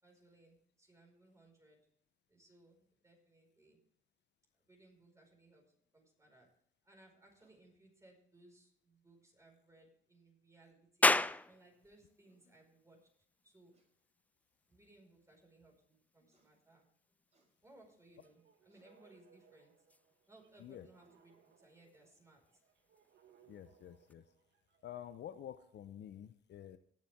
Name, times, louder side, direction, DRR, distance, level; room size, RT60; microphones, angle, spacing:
voice 1, 0.0-1.8 2.3-3.8 4.5-5.7 5.9-6.5 6.8-11.1 11.4-13.1 13.4-13.7 14.7-16.9 17.6-19.7 20.3-22.6, right 2 dB, 15° right, 1 dB, 5.0 m, -64 dB
Fight Reaction Kick Sequence, 7.4-7.7 9.1-9.2 10.8-10.9 11.2-11.4 11.9-12.0 12.2-12.5 13.7-13.9 14.7-14.8 16.3-16.5 17.3-17.5 18.3-18.4 18.7-18.9, right 2 dB, 35° right, 5.5 m, -76 dB
sound 1, 11.0-24.1, left 2 dB, 10° left, 0.3 m, -40 dB
sound 2, 18.1-25.0, right 7 dB, 65° right, 2.0 m, -69 dB
voice 2, 23.5-24.2 24.8-26.8, left 10 dB, 60° left, 11 dB, 0.7 m, -49 dB
19.0 x 7.5 x 3.6 m, 0.65 s
cardioid pair, 90°, 20 cm